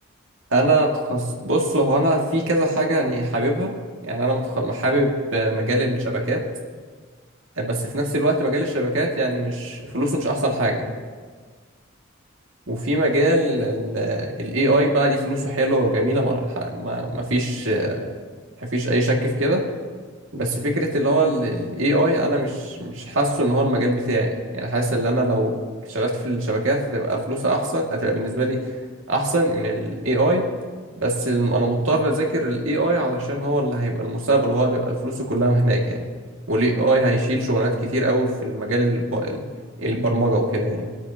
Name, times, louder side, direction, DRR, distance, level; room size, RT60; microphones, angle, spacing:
voice 1, 0.5-3.7 4.0-6.4 7.6-10.9 12.7-18.1 18.6-19.7 20.3-25.6 25.9-28.7 29.1-30.5 31.0-36.1 36.5-39.4 39.8-41.0, right 1 dB, 85° right, -1 dB, 2.1 m, -22 dB
24.5 x 8.7 x 2.9 m, 1.5 s
head